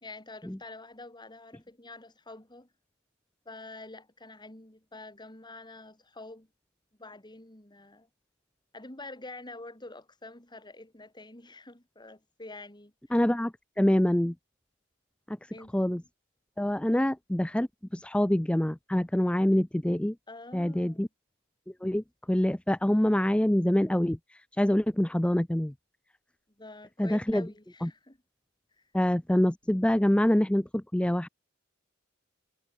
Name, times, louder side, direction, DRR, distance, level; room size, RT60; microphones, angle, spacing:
voice 1, 0.0-2.7 3.5-6.5 7.0-8.1 8.7-12.9 15.5-15.8 16.9-17.0 20.3-21.1 26.6-28.2 28.8-28.9, left 2 dB, 20° left, 3.4 m, -47 dB
voice 2, 13.1-14.3 15.3-16.0 16.6-20.2 20.5-21.1 21.8-25.7 27.0-27.5 27.8-27.9 28.9-31.3, left 1 dB, 5° left, 0.4 m, -26 dB
head